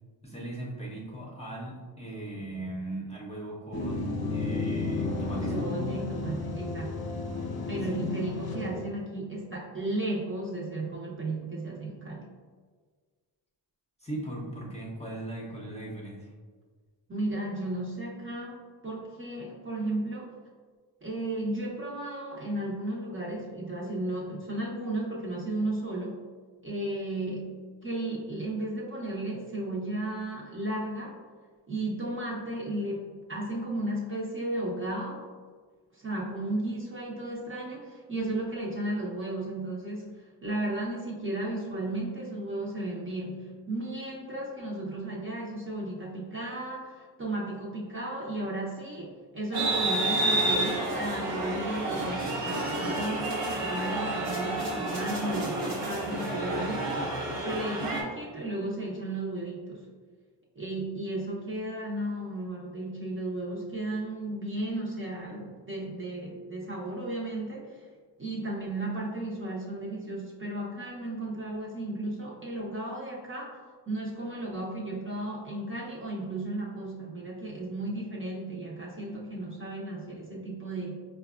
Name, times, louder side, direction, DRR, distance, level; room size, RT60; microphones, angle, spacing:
voice 1, 0.2-5.7 7.9-8.1 14.0-16.3, right 1 dB, 15° left, -4 dB, 0.8 m, -38 dB
sound 1, 3.7-9.0, left 3 dB, 55° left, 0.7 m, -32 dB
voice 2, 5.3-7.0 7.7-12.3 17.1-18.6 18.8-20.3 21.0-26.2 26.6-31.2 31.7-35.2 35.9-57.0 57.4-59.9 60.5-67.9 68.2-73.6 73.9-81.0, right 1 dB, 25° right, -4 dB, 0.8 m, -34 dB
sound 2, 49.5-58.0, right 1 dB, 80° right, 0.9 m, -30 dB
4.6 x 2.3 x 2.4 m, 1.5 s
cardioid pair, 55°, 45 cm